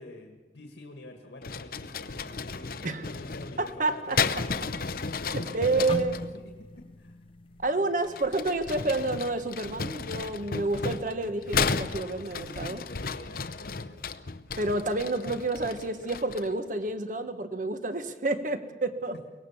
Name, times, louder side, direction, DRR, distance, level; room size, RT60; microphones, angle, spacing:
voice 1, 0.0-7.2 12.2-14.0, left 2 dB, 80° left, 3 dB, 1.9 m, -47 dB
sound 1, 1.4-6.3 8.0-16.6, left 5 dB, 55° left, 0.8 m, -34 dB
voice 2, 3.6-4.2 5.3-6.2 7.6-12.8 14.6-19.1, right 2 dB, 45° right, 9 dB, 1.4 m, -29 dB
sound 2, 5.9-9.9 10.3-10.5 11.2-11.5, left 1 dB, 30° left, 0.9 m, -41 dB
23.5 x 18.5 x 7.2 m, 1.2 s
head